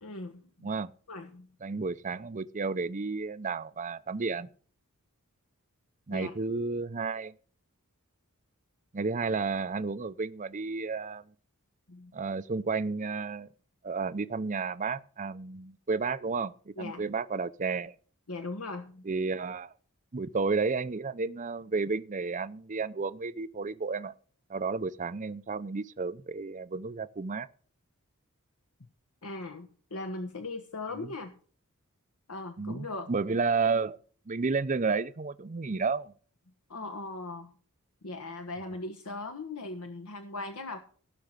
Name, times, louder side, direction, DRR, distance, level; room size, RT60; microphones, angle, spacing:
voice 1, 0.0-0.7 1.1-1.5 6.1-6.3 11.9-12.1 16.8-17.0 18.3-19.0 29.2-31.3 32.3-33.1 36.7-37.5 38.0-40.8, left 2 dB, 80° left, 1.3 m, -39 dB
voice 2, 1.6-4.5 6.1-7.3 8.9-11.2 12.1-13.5 13.8-17.9 19.1-19.7 20.1-24.1 24.5-27.5 30.9-31.1 32.6-34.0 34.3-36.1, right 4 dB, 35° right, 0.5 m, -32 dB
17.0 x 6.0 x 6.6 m
head